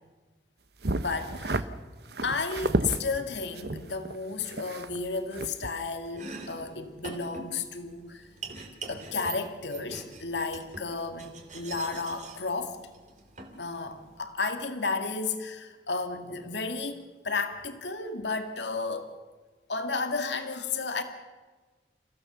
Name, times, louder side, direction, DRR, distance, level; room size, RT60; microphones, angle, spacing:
sound 1, 0.8-1.6 2.1-3.0 3.6-5.1 5.3-5.7, right 2 dB, 65° right, 1.0 m, -31 dB
voice 1, 0.9-1.7 2.2-8.3 8.9-12.8 13.6-19.1 19.7-21.0, left 4 dB, 80° left, 7 dB, 2.0 m, -33 dB
Domestic sounds home sounds, 6.0-14.2, right 3 dB, 40° right, 3.0 m, -44 dB
29.5 x 16.0 x 7.0 m, 1.3 s
head